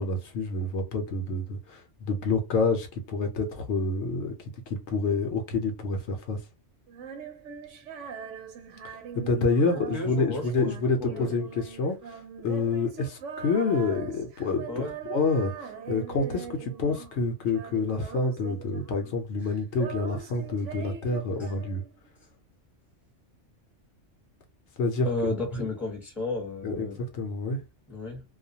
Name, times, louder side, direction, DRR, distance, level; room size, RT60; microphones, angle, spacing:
voice 1, 0.0-4.3 4.7-6.4 8.8-21.8 24.8-25.7 26.6-27.6, left 3 dB, 70° left, 0.9 m, -28 dB
Female singing, 6.9-17.2 17.5-19.2 19.4-22.1, right 7 dB, 85° right, 1.0 m, -41 dB
voice 2, 9.7-10.7 11.0-11.3 14.7-14.9 25.0-27.0 27.9-28.2, left 2 dB, ahead, 0.8 m, -33 dB
2.4 x 2.2 x 2.7 m
omnidirectional pair, 1.2 m